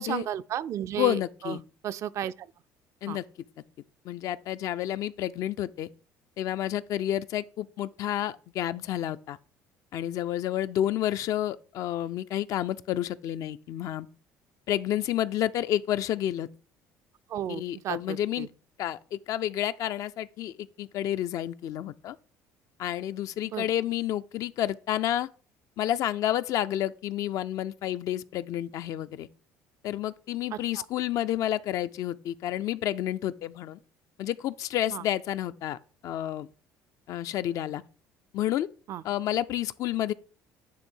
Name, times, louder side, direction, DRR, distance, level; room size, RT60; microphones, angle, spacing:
voice 1, 0.0-1.6 1.8-2.5 3.1-3.2 17.3-18.5 23.5-23.7 30.5-30.8 34.9-35.0 38.9-39.0, right 10 dB, 55° right, 0.4 m, -34 dB
voice 2, 1.0-1.6 3.0-3.2 4.1-5.9 6.4-9.4 9.9-14.1 14.7-16.5 17.5-18.5 18.8-22.2 22.8-25.3 25.8-29.3 29.8-33.8 34.2-35.8 36.0-36.5 37.1-37.8 38.3-38.7 39.0-40.1, left 12 dB, 60° left, 0.4 m, -30 dB
9.5 x 3.3 x 4.5 m
cardioid pair, 100°, 6 cm